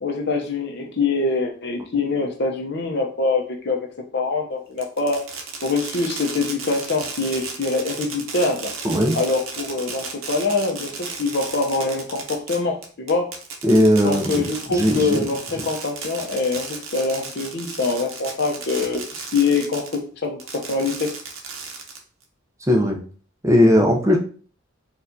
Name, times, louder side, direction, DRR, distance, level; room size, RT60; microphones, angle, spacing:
voice 1, 0.0-3.9 4.1-5.2 5.6-8.7 9.1-13.3 14.0-21.1, left 3 dB, 55° left, 4 dB, 0.6 m, -24 dB
Fireworks, 4.8-20.0 20.4-22.2, right 5 dB, 75° right, 0.7 m, -34 dB
voice 2, 8.8-9.2 13.6-14.4 14.7-15.2 22.7-23.0 23.4-24.2, equal, 15° right, 1 dB, 0.5 m, -17 dB
4.3 x 2.3 x 2.6 m, 0.42 s
head